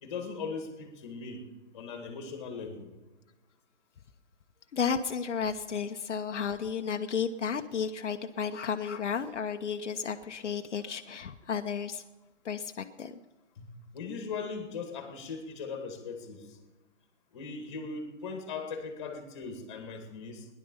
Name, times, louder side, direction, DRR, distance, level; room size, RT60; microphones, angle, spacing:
voice 1, 0.0-1.4 1.7-2.9 13.6-16.6 17.3-20.5, left 4 dB, 25° left, 5 dB, 2.1 m, -39 dB
voice 2, 4.7-12.0 12.4-13.2, left 6 dB, 75° left, 6 dB, 1.0 m, -33 dB
17.5 x 11.0 x 5.5 m, 1.1 s
hypercardioid pair, 175°, 36 cm